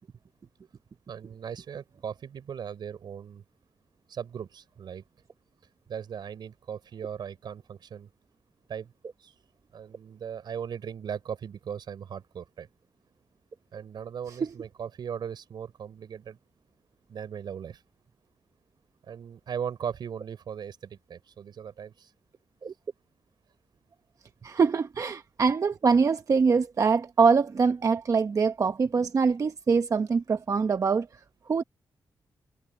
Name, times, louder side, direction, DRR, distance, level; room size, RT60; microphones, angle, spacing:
voice 1, 1.1-3.4 4.1-5.0 5.9-8.1 8.7-8.9 9.2-9.3 9.7-12.7 13.7-16.4 17.1-17.8 19.1-22.1 24.5-24.6, right 8 dB, 75° right, 4.2 m, -38 dB
voice 2, 24.4-31.1 31.5-31.6, right 5 dB, 45° right, 0.9 m, -24 dB
cardioid pair, 100°, 8 cm